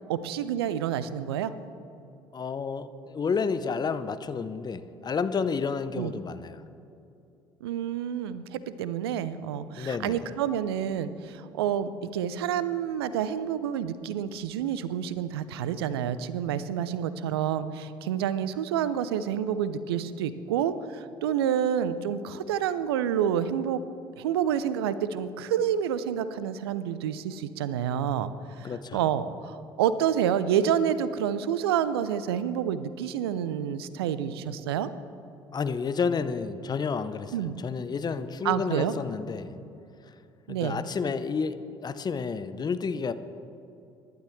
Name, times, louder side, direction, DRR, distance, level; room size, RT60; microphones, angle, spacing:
voice 1, 0.1-1.5 6.0-6.1 7.6-23.8 24.2-28.3 28.6-34.9 37.3-37.6 38.4-38.9 40.5-40.8, right 9 dB, 75° right, 14 dB, 0.6 m, -28 dB
voice 2, 2.3-6.6 9.8-10.2 28.6-29.0 35.5-39.5 40.5-43.1, left 5 dB, 30° left, 12 dB, 0.8 m, -30 dB
23.5 x 12.0 x 3.3 m, 2.7 s
figure-of-eight pair, 55°, 13 cm